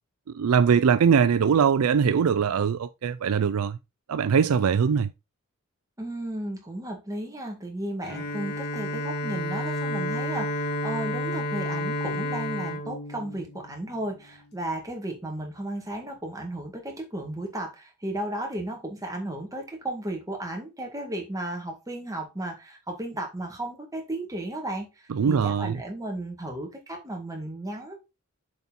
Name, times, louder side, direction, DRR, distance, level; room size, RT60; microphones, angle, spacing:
voice 1, 0.3-3.8 4.1-5.1 25.1-25.8, right 6 dB, 75° right, 0.4 m, -22 dB
voice 2, 6.0-28.0, right 1 dB, 15° right, 1.9 m, -34 dB
Bowed string instrument, 8.0-14.0, left 1 dB, 45° left, 1.6 m, -31 dB
7.0 x 4.3 x 4.2 m
head